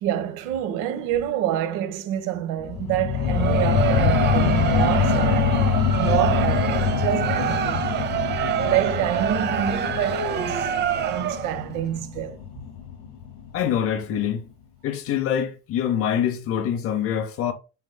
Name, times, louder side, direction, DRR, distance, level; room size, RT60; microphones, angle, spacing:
voice 1, 0.0-5.6 5.9-7.8 8.6-10.7 11.0-12.4, right 11 dB, 55° right, 1.2 m, -27 dB
sound 1, 2.6-13.8 14.2-14.3, left 7 dB, 55° left, 1.3 m, -25 dB
Crowd, 3.2-11.6, right 9 dB, 30° right, 0.7 m, -26 dB
voice 2, 13.5-14.5 14.8-17.5, left 9 dB, 35° left, 0.8 m, -25 dB
9.4 x 6.5 x 2.2 m
cardioid pair, 170°, 38 cm